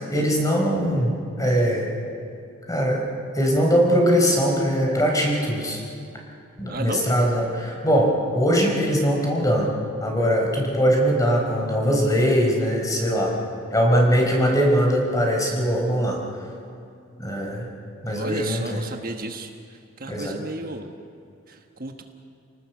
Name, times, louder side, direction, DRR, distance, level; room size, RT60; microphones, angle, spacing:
voice 1, 0.1-1.9 2.7-3.0 3.3-5.8 6.6-9.7 10.0-13.3 13.7-16.2 17.2-17.7 18.0-18.8 20.1-20.3, equal, 20° left, 0 dB, 4.3 m, -21 dB
voice 2, 6.7-7.0 18.1-19.5 20.0-20.9 21.5-22.0, right 2 dB, 45° right, 4 dB, 1.2 m, -33 dB
29.0 x 18.5 x 7.1 m, 2.5 s
head